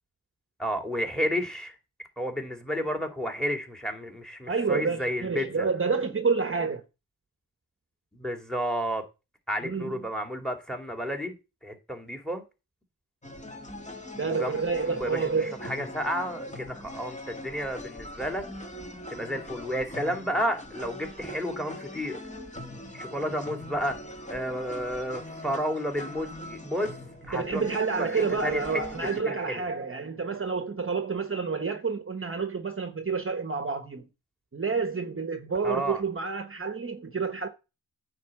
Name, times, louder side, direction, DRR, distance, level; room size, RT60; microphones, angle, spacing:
voice 1, 0.6-1.7 2.2-5.7 8.1-9.0 9.5-11.3 11.6-12.4 14.2-14.5 14.9-15.3 15.6-18.4 19.1-22.2 22.9-24.0 24.3-26.9 27.3-27.6 28.1-28.6 29.2-29.6 35.6-36.0, equal, ahead, 2.5 m, -31 dB
voice 2, 4.5-6.8 9.6-10.1 14.2-15.5 27.3-34.1 34.5-37.5, right 5 dB, 35° right, 1.2 m, -29 dB
sound 1, 13.2-29.2, left 1 dB, 20° left, 2.0 m, -41 dB
9.5 x 4.4 x 7.6 m
cardioid pair, 75°, 36 cm